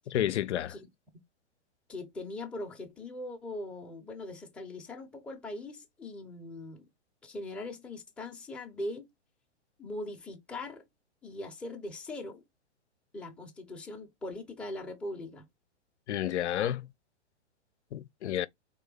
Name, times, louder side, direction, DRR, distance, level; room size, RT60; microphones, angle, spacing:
voice 1, 0.1-0.8 16.1-16.9 17.9-18.5, left 11 dB, 75° left, 0.6 m, -30 dB
voice 2, 1.9-6.9 7.2-9.1 9.8-10.8 11.2-12.4 13.1-15.5, left 2 dB, 5° left, 0.6 m, -41 dB
3.7 x 2.7 x 3.8 m
hypercardioid pair, 135°, 35 cm